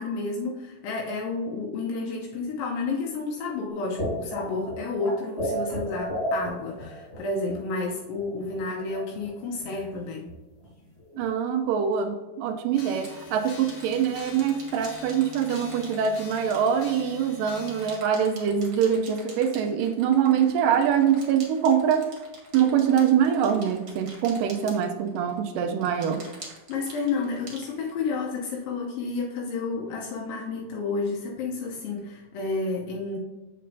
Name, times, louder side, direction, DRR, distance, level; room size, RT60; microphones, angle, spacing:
voice 1, 0.0-10.3 26.7-33.2, left 3 dB, 80° left, -1 dB, 2.5 m, -31 dB
sound 1, 3.7-7.5 7.8-7.9 8.2-9.3 9.6-10.0 10.3-10.4 10.6-10.7 11.0-11.2, right 1 dB, 45° left, 0.8 m, -33 dB
voice 2, 11.2-22.1 22.5-26.2, right 8 dB, 80° right, 6 dB, 2.2 m, -24 dB
sound 2, 11.9-12.0 12.9-17.3 17.5-25.4 25.8-28.3, right 3 dB, 45° right, 1.8 m, -46 dB
sound 3, 12.7-18.0, left 4 dB, 60° left, 2.3 m, -45 dB
7.5 x 6.6 x 2.6 m, 1.2 s
omnidirectional pair, 4.0 m